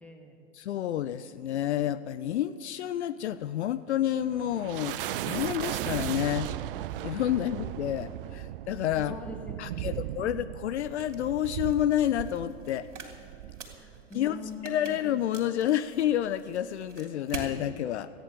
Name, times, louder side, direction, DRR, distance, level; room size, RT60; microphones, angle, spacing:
voice 1, 0.0-0.4 8.3-8.4 9.0-10.3 13.7-15.0, left 3 dB, 5° left, 1 dB, 1.8 m, -44 dB
voice 2, 0.5-6.5 7.0-9.1 9.6-12.9 14.1-14.4 14.6-18.1, left 11 dB, 65° left, 15 dB, 0.5 m, -29 dB
sound 1, 3.9-14.6, right 13 dB, 50° right, 0.5 m, -37 dB
sound 2, 10.9-17.6, right 4 dB, 70° right, 2.8 m, -46 dB
14.0 x 9.5 x 8.4 m, 2.6 s
figure-of-eight pair, 105°, 36 cm